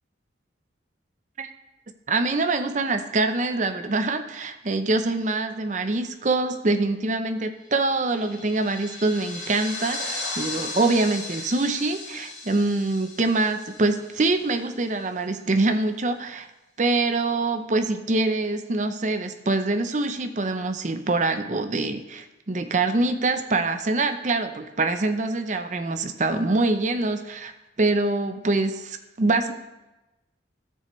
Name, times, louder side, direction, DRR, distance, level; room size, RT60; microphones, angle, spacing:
voice 1, 2.1-16.5 16.8-27.5 27.8-29.5, right 2 dB, 40° right, 8 dB, 0.6 m, -24 dB
sound 1, 7.7-14.6, left 2 dB, 75° left, 3.6 m, -36 dB
13.5 x 6.6 x 3.1 m, 1.0 s
head